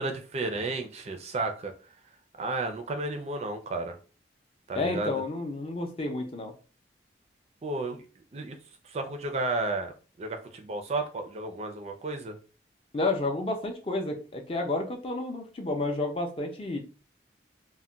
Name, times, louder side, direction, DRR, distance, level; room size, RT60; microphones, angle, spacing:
voice 1, 0.0-1.7 2.4-4.0 4.7-5.1 7.6-8.0 8.3-8.6 8.9-9.9 10.2-12.4, right 2 dB, 35° right, 5 dB, 0.4 m, -32 dB
voice 2, 4.7-6.5 12.9-16.8, left 2 dB, 30° left, 3 dB, 0.4 m, -30 dB
2.2 x 2.1 x 3.8 m, 0.37 s
head